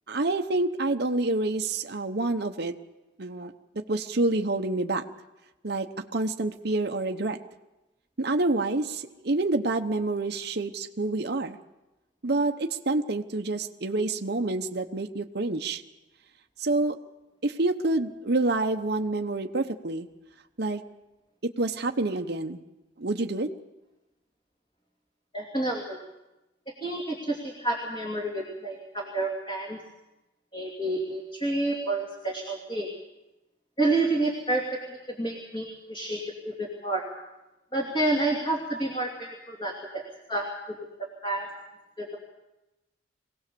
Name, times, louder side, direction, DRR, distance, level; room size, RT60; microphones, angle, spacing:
voice 1, 0.1-2.7 3.2-5.0 5.6-7.4 8.2-11.6 12.2-15.8 16.6-17.0 17.4-20.1 20.6-20.8 21.4-22.6 23.0-23.5, right 2 dB, 55° right, 5 dB, 0.9 m, -28 dB
voice 2, 25.3-26.0 26.8-29.8 30.5-32.9 33.8-37.1 37.7-40.0 40.3-40.8 41.2-41.5 42.0-42.2, right 2 dB, 25° left, -1 dB, 2.7 m, -29 dB
23.5 x 17.5 x 6.9 m, 0.99 s
head